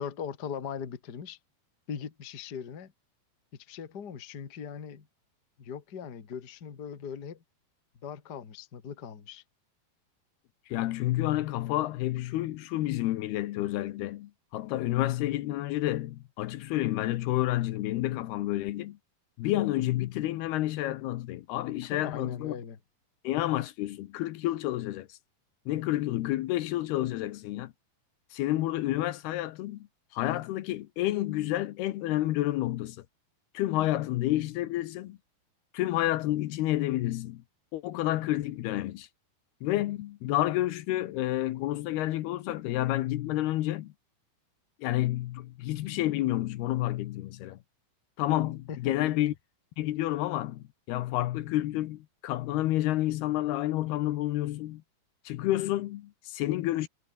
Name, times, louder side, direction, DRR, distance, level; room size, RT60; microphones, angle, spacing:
voice 1, 0.0-1.4 1.9-2.9 3.7-5.1 5.6-7.4 8.0-9.4 21.8-22.8 48.7-49.1, left 7 dB, 35° left, 1.7 m, -39 dB
voice 2, 10.7-19.0 19.4-22.5 23.2-25.2 25.7-27.7 28.3-29.9 30.1-33.0 33.5-35.2 35.7-37.4 37.7-39.1 39.6-43.9 44.8-47.6 48.2-49.3 49.8-54.8 55.3-56.9, left 15 dB, 75° left, 2.9 m, -29 dB
omnidirectional pair, 4.8 m